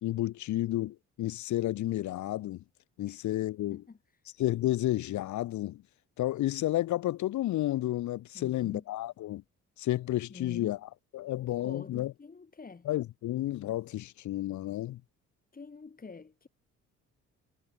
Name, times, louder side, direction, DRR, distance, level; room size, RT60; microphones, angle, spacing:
voice 1, 0.0-2.6 3.0-3.8 4.4-5.8 6.2-9.4 9.8-12.1 12.8-15.0, left 15 dB, 70° left, 0.9 m, -31 dB
voice 2, 8.3-8.8 10.3-10.8 11.4-12.9 15.5-16.5, left 4 dB, 30° left, 3.9 m, -46 dB
cardioid pair, 90°, 30 cm